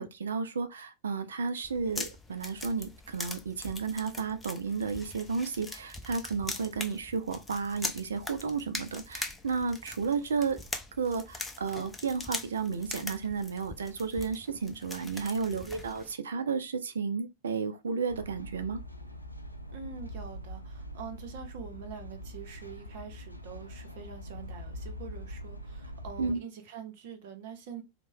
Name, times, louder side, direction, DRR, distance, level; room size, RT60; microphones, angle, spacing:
voice 1, 0.0-10.6 11.0-18.8 26.2-26.4, right 5 dB, 65° right, 0.4 m, -32 dB
sound 1, 1.6-16.1, left 2 dB, 10° left, 0.5 m, -42 dB
sound 2, 18.1-26.4, equal, 85° left, 0.4 m, -43 dB
voice 2, 19.7-27.8, right 6 dB, 50° right, 0.7 m, -45 dB
3.0 x 2.1 x 2.6 m
figure-of-eight pair, 90°, 0 cm